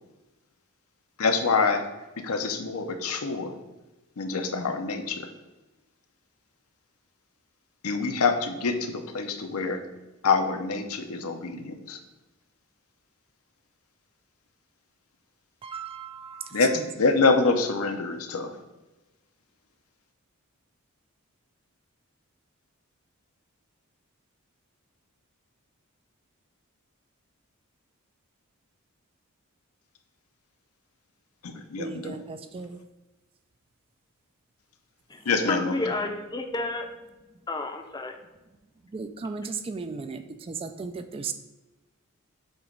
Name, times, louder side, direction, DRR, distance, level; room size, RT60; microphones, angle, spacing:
voice 1, 1.2-1.8 2.2-3.5 4.2-5.3 7.8-9.8 10.2-12.0 16.5-18.5 31.4-32.2 35.2-35.9, left 4 dB, 80° left, 6 dB, 0.7 m, -26 dB
voice 2, 15.6-16.9 31.8-32.8 38.9-41.3, right 4 dB, 25° right, 9 dB, 0.3 m, -36 dB
voice 3, 35.5-36.9 37.5-38.1, left 2 dB, 20° left, 5 dB, 0.6 m, -31 dB
7.9 x 3.0 x 5.2 m, 1.1 s
head